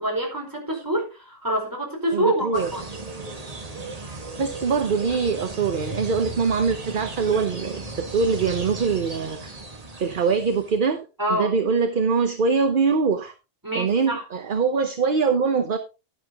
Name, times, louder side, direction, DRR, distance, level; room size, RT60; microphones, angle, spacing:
voice 1, 0.0-2.8 11.2-11.5 13.6-14.2, right 1 dB, 15° right, 4.5 m, -26 dB
voice 2, 2.1-2.7 4.0-9.5 10.0-13.3 13.7-15.8, right 5 dB, 45° right, 1.0 m, -23 dB
sound 1, 2.5-10.8, right 2 dB, 30° right, 1.7 m, -36 dB
11.0 x 11.0 x 2.9 m
omnidirectional pair, 1.3 m